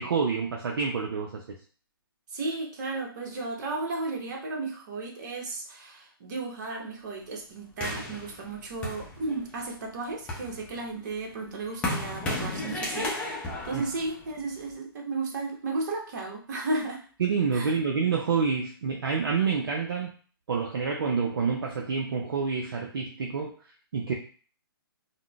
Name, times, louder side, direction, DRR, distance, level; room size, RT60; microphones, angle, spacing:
voice 1, 0.0-1.4 13.7-13.8 17.2-20.1 20.5-23.5 23.9-24.1, right 5 dB, 65° right, 0 dB, 0.5 m, -28 dB
voice 2, 2.3-17.0 17.5-17.8, right 3 dB, 50° right, 0 dB, 0.9 m, -34 dB
sound 1, 7.8-9.6 10.1-14.7, left 1 dB, 10° left, 0.7 m, -34 dB
3.6 x 2.1 x 2.3 m, 0.41 s
figure-of-eight pair, 130°, 13 cm